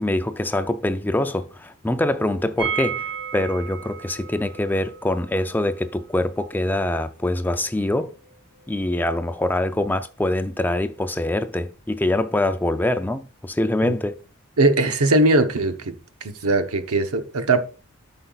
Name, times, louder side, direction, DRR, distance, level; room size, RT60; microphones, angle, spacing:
voice 1, 0.0-8.1 8.7-14.2, left 1 dB, 10° left, 0.4 m, -24 dB
sound 1, 2.6-8.4 8.6-8.7 9.0-9.1, right 8 dB, 20° right, 1.9 m, -34 dB
voice 2, 14.6-15.9 16.2-17.6, right 2 dB, 90° right, 0.9 m, -20 dB
12.5 x 5.5 x 2.4 m
head